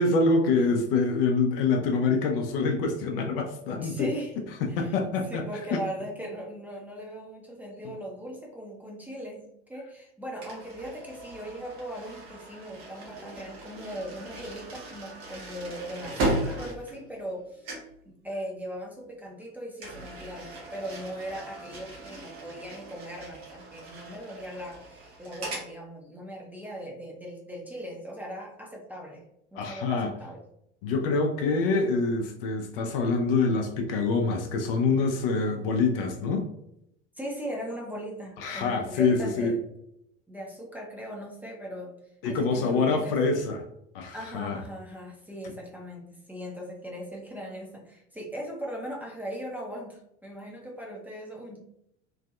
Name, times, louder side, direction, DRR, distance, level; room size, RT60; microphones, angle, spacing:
voice 1, 0.0-4.1 4.7-5.4 5.7-5.8 29.5-30.1 30.8-36.5 38.4-39.5 42.2-43.6 43.9-44.6, left 4 dB, 50° left, 3 dB, 0.5 m, -25 dB
voice 2, 3.8-4.3 4.7-4.9 5.3-17.7 18.1-29.2 29.5-30.4 37.1-39.6 40.3-41.9 42.2-43.2 44.1-51.6, equal, 5° right, -2 dB, 0.6 m, -39 dB
sound 1, 10.4-17.4 17.6-18.0 19.8-25.7, right 2 dB, 60° right, 1.1 m, -37 dB
3.1 x 2.5 x 2.3 m, 0.77 s
figure-of-eight pair, 70°, 35 cm